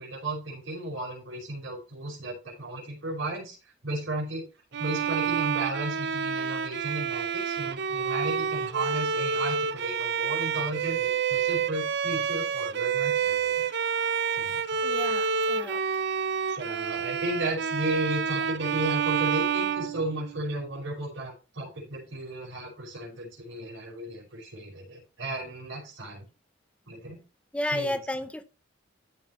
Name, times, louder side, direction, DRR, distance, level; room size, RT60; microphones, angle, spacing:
voice 1, 0.0-3.6 3.8-4.5 4.8-13.7 14.3-14.6 16.5-26.2 26.9-27.2 27.7-28.0, right 1 dB, 85° right, 5.2 m, -34 dB
Bowed string instrument, 4.7-20.6, right 6 dB, 60° right, 0.6 m, -28 dB
voice 2, 14.8-15.8 27.5-28.4, left 1 dB, 5° left, 0.6 m, -32 dB
14.0 x 5.9 x 3.1 m
head